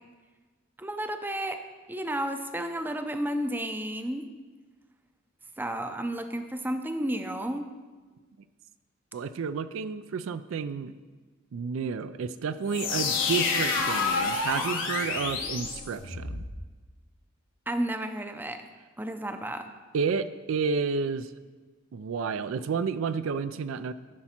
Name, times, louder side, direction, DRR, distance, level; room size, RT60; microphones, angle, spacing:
voice 1, 0.8-1.6 1.9-4.3 5.6-7.6 17.7-18.6 19.0-19.7, right 1 dB, 10° right, 7 dB, 0.5 m, -32 dB
voice 2, 9.1-10.9 11.5-16.4 19.9-21.3 21.9-23.9, right 5 dB, 70° right, 13 dB, 0.4 m, -31 dB
sound 1, 12.7-16.5, left 4 dB, 65° left, 1.5 m, -29 dB
12.0 x 5.8 x 4.4 m, 1.4 s
head